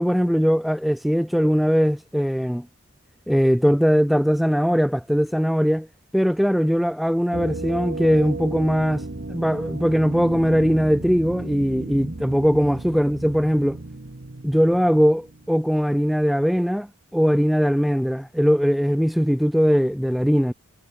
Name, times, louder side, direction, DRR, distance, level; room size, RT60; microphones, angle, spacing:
voice 1, 0.0-2.7 3.3-5.9 6.1-13.8 14.4-20.5, equal, ahead, 0.4 m, -20 dB
sound 1, 7.3-16.0, right 2 dB, 55° right, 1.1 m, -34 dB
head